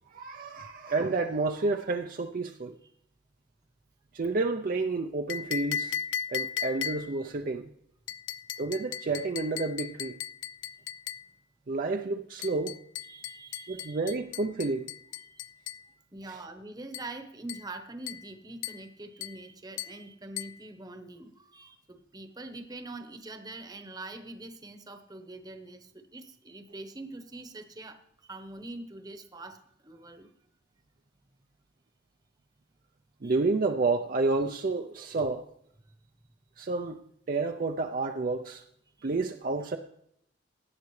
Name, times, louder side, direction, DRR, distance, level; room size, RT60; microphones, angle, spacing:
voice 1, 0.1-2.8 4.1-5.9 6.3-7.7 8.6-10.2 11.7-12.8 13.7-14.9 16.3-16.4 33.2-35.4 36.6-37.0 37.3-38.6 39.0-39.8, right 3 dB, 45° right, 4 dB, 0.5 m, -30 dB
sound 1, 5.3-7.3 8.1-11.3 12.4-15.9 16.9-17.2 17.5-17.7 18.1-18.3 18.6-18.9 19.2-19.4 19.8-20.0 20.4-20.6, left 8 dB, 70° left, 0.4 m, -37 dB
voice 2, 13.0-14.1 15.2-15.5 16.1-30.3 33.2-33.4 39.0-39.1, right 2 dB, 20° right, 7 dB, 1.0 m, -44 dB
17.5 x 10.5 x 3.2 m, 0.73 s
head